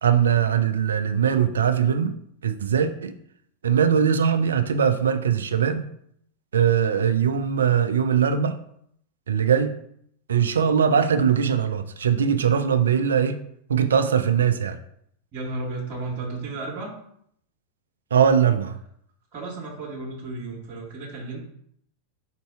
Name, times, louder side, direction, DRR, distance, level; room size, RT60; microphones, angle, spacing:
voice 1, 0.0-2.2 2.4-3.1 3.6-5.8 6.5-8.6 9.3-9.8 10.3-13.4 13.7-14.8 18.1-18.8, right 7 dB, 65° right, 10 dB, 0.4 m, -21 dB
voice 2, 15.3-16.9 19.3-21.4, right 3 dB, 40° right, -2 dB, 1.3 m, -33 dB
4.4 x 2.6 x 4.6 m, 0.69 s
figure-of-eight pair, 90°, 0 cm